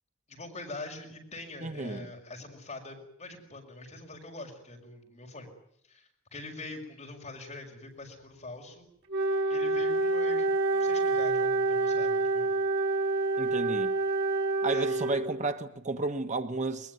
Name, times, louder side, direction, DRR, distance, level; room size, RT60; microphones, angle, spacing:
voice 1, 0.3-5.5 5.9-8.9 9.5-12.5 14.7-15.1, left 2 dB, 35° left, 6.2 m, -44 dB
voice 2, 1.6-2.1 13.4-13.9 14.6-16.9, right 3 dB, 40° right, 1.2 m, -32 dB
Wind instrument woodwind instrument, 9.1-15.5, right 3 dB, 60° right, 3.6 m, -27 dB
21.5 x 21.5 x 9.5 m
head